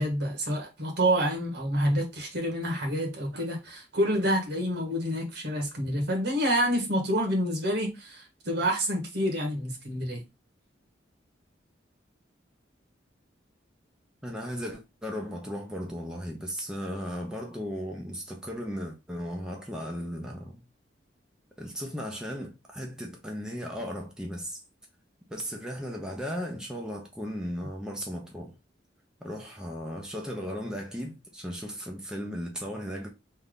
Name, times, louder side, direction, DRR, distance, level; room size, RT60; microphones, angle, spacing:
voice 1, 0.0-10.2, equal, 65° right, 1.4 m, -28 dB
voice 2, 14.2-20.6 21.6-24.6 25.3-28.5 29.2-33.1, equal, 5° right, 0.7 m, -36 dB
3.4 x 2.8 x 3.6 m
head